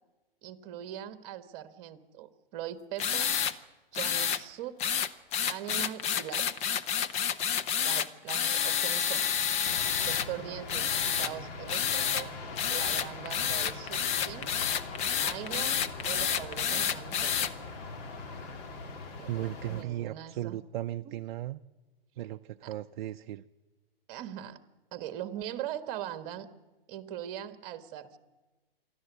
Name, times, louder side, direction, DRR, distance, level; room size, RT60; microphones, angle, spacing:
voice 1, 0.4-3.6 3.9-4.9 5.5-6.7 7.2-7.4 7.8-9.3 10.0-12.3 12.7-14.6 15.1-17.3 19.2-20.6 21.0-21.2 22.6-22.7 24.1-24.6 24.9-26.5 26.9-28.2, right 11 dB, 35° right, 10 dB, 1.5 m, -41 dB
sound 1, 3.0-3.5 3.9-4.4 4.8-10.3 10.7-11.3 11.7-12.2 12.6-17.5, left 8 dB, 20° left, 0.8 m, -29 dB
sound 2, 9.6-19.8, left 3 dB, 45° left, 3.1 m, -42 dB
voice 2, 19.3-21.6 22.2-23.4, right 13 dB, 55° right, 10 dB, 0.6 m, -36 dB
27.0 x 12.0 x 8.3 m, 1.2 s
hypercardioid pair, 130°, 29 cm